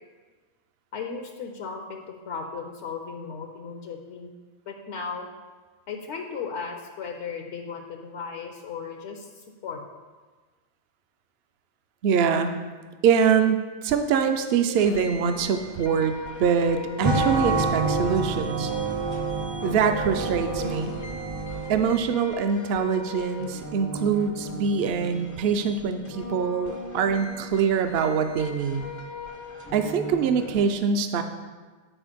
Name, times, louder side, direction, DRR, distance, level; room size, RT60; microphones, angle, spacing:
voice 1, 0.9-4.3 4.7-5.3 5.9-9.8 14.7-14.8, left 5 dB, 75° left, 3 dB, 1.0 m, -36 dB
voice 2, 12.0-12.5 13.0-18.7 19.6-20.9 21.7-28.8 29.7-31.2, right 6 dB, 65° right, 8 dB, 0.7 m, -24 dB
sound 1, 14.7-30.6, left 2 dB, 20° left, 0.5 m, -38 dB
sound 2, 17.0-22.2, right 3 dB, 30° right, 0.5 m, -28 dB
8.9 x 4.5 x 5.0 m, 1.4 s
omnidirectional pair, 1.2 m